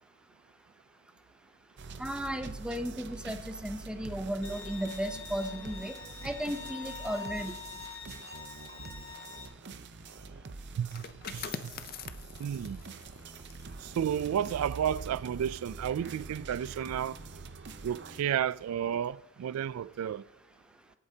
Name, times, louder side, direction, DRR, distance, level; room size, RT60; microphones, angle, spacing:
sound 1, 1.8-18.2, right 3 dB, 55° right, 0.7 m, -45 dB
voice 1, 2.0-6.0 6.2-7.5, equal, 5° right, 0.6 m, -35 dB
Bowed string instrument, 4.4-9.5, left 6 dB, 75° left, 1.9 m, -45 dB
sound 2, 10.8-16.3 16.7-16.9, left 7 dB, 45° left, 0.5 m, -46 dB
voice 2, 11.3-11.7 12.4-12.8 13.8-17.2 17.8-20.2, right 9 dB, 90° right, 0.3 m, -32 dB
24.5 x 8.3 x 2.8 m
head